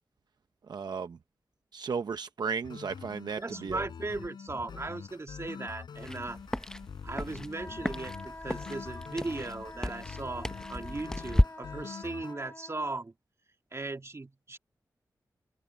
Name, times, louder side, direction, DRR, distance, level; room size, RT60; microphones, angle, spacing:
voice 1, 0.7-1.2 1.7-3.9, right 5 dB, 75° right, 0.8 m, -35 dB
sound 1, 2.6-12.3, left 6 dB, 90° left, 7.8 m, -45 dB
voice 2, 3.4-6.4 7.0-13.1 13.7-14.6, right 3 dB, 40° right, 2.2 m, -38 dB
sound 2, 6.0-11.5, left 1 dB, 10° left, 0.8 m, -33 dB
sound 3, 7.5-13.0, left 2 dB, 30° left, 5.1 m, -46 dB
open air
cardioid pair, 55°, 7 cm